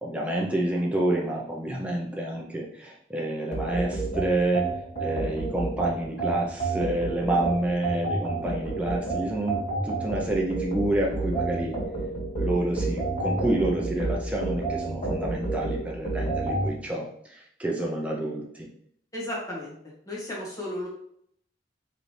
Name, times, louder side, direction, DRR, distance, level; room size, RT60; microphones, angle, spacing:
voice 1, 0.0-4.7 5.0-11.8 12.4-18.4, right 1 dB, 5° right, -3 dB, 0.5 m, -28 dB
sound 1, 3.5-16.7, right 3 dB, 40° left, 1.8 m, -29 dB
voice 2, 19.1-19.7 20.0-20.9, left 1 dB, 20° left, -5 dB, 1.5 m, -33 dB
4.9 x 3.2 x 3.1 m, 0.68 s
head